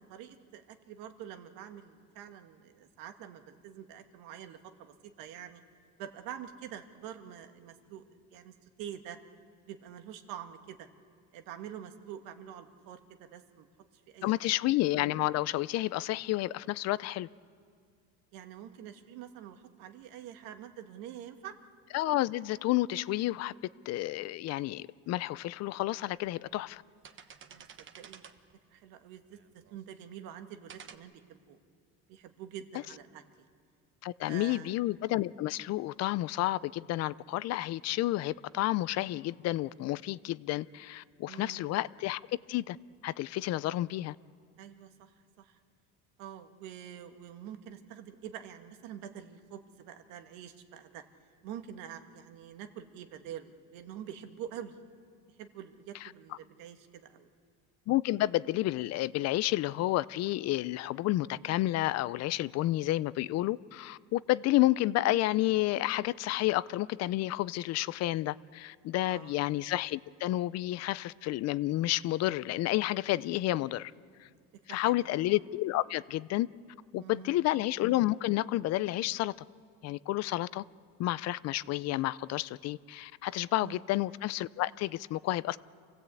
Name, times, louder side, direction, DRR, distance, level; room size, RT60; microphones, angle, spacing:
voice 1, 0.0-5.6 6.0-9.2 9.7-10.9 11.3-13.7 14.1-14.3 18.3-21.5 27.5-28.2 28.7-31.2 31.5-31.6 32.1-33.2 34.2-34.7 41.2-41.7 44.6-45.6 46.2-51.0 51.4-54.8 55.4-57.3 69.1-69.4 74.7-75.1 77.0-77.5 83.6-83.8, right 9 dB, 80° right, 1.7 m, -46 dB
voice 2, 14.2-17.3 21.9-23.5 23.9-26.8 34.0-42.2 42.5-42.8 43.0-44.2 57.9-73.9 74.7-76.5 76.9-79.3 79.8-80.6 81.0-85.6, left 16 dB, 50° left, 0.5 m, -30 dB
sound 1, 25.4-25.5 26.1-26.5 26.8-28.6 29.3-30.0 30.7-31.0, right 7 dB, 35° right, 1.2 m, -52 dB
28.0 x 16.5 x 8.3 m
cardioid pair, 140°, 33 cm